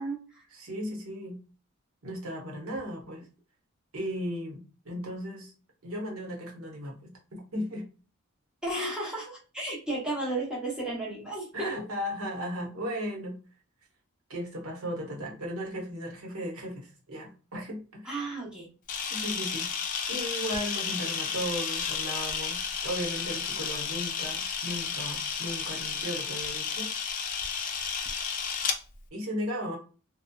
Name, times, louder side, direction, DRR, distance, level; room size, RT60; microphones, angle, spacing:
voice 1, 0.0-0.4 8.6-11.7 18.0-18.7, right 2 dB, 5° right, -5 dB, 0.7 m, -33 dB
voice 2, 0.5-1.4 2.0-3.3 3.9-5.5 5.8-7.8 11.5-13.4 14.3-18.3 19.1-19.7 20.1-26.9 28.2-28.3 29.1-29.8, equal, 70° right, 0 dB, 0.9 m, -36 dB
Camera, 18.9-28.8, left 6 dB, 40° left, 0.4 m, -32 dB
2.6 x 2.1 x 2.2 m, 0.36 s
head